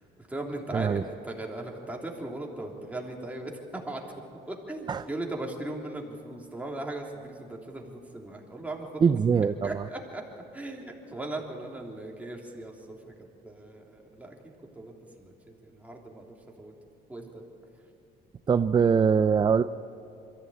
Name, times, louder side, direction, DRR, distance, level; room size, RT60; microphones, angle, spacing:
voice 1, 0.0-4.0 4.5-9.0 9.6-10.2 10.5-15.3 15.6-16.7 17.1-17.4, right 2 dB, 10° right, -1 dB, 3.2 m, -38 dB
voice 2, 9.0-9.8 18.5-19.6, right 6 dB, 25° right, 12 dB, 0.5 m, -22 dB
23.0 x 14.5 x 8.7 m, 2.8 s
cardioid pair, 110°, 17 cm